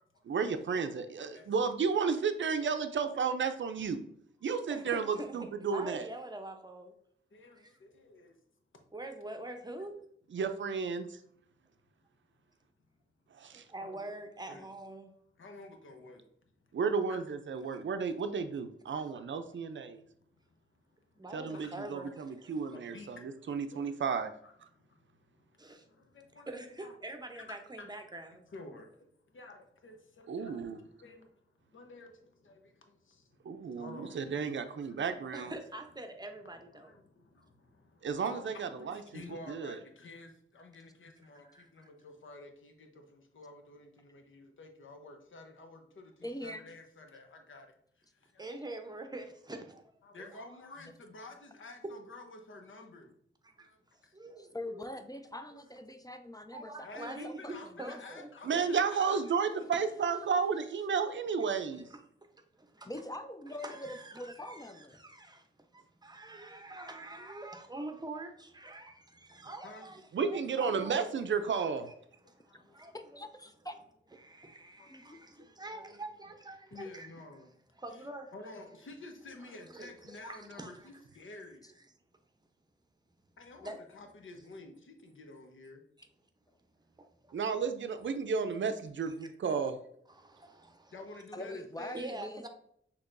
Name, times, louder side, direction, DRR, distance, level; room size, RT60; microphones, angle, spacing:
voice 1, 0.2-4.0 4.4-6.0 10.3-11.1 13.4-13.6 16.7-20.0 21.3-24.3 30.3-30.8 33.5-35.5 38.0-39.0 39.5-39.8 58.5-61.9 70.1-71.9 87.3-89.8, right 5 dB, 65° right, 9 dB, 0.5 m, -32 dB
voice 2, 5.1-6.9 7.5-7.7 8.9-9.9 13.5-15.1 21.2-22.5 25.6-25.8 26.5-28.4 35.3-37.0 41.4-41.7 48.4-50.5 51.8-51.9 53.4-53.7 54.1-54.8 56.5-58.6 61.9-62.0 62.6-62.9 63.5-65.5 65.7-71.1 71.9-72.0 72.2-73.2 74.2-77.1 77.8-78.3 79.5-80.9 83.6-83.8 87.0-87.6 90.1-90.9 91.9-92.5, right 2 dB, 20° right, 5 dB, 0.7 m, -45 dB
voice 3, 7.3-8.4 10.9-11.0 13.6-14.0 14.4-14.7 15.4-16.2 16.7-16.8 17.1-17.2 17.6-17.7 19.8-20.0 20.2-20.6 20.9-21.1 21.5-21.7 22.7-24.0 24.4-26.5 26.8-26.9 27.3-27.4 27.8-27.9 28.3-31.4 31.7-35.0 36.7-47.7 48.0-48.4 50.0-53.1 53.6-54.1 56.8-59.9 69.6-69.9 72.5-72.8 74.8-76.0 76.7-77.5 77.9-78.1 78.3-81.6 83.4-85.8 90.9-92.1, left 2 dB, 70° left, 5 dB, 0.8 m, -51 dB
voice 4, 46.2-46.6 50.8-50.9 54.4-58.0 62.8-65.0 72.9-73.7 74.9-75.2 91.3-92.5, left 1 dB, 20° left, 7 dB, 0.4 m, -43 dB
6.2 x 2.9 x 2.5 m, 0.69 s
cardioid pair, 70°, 21 cm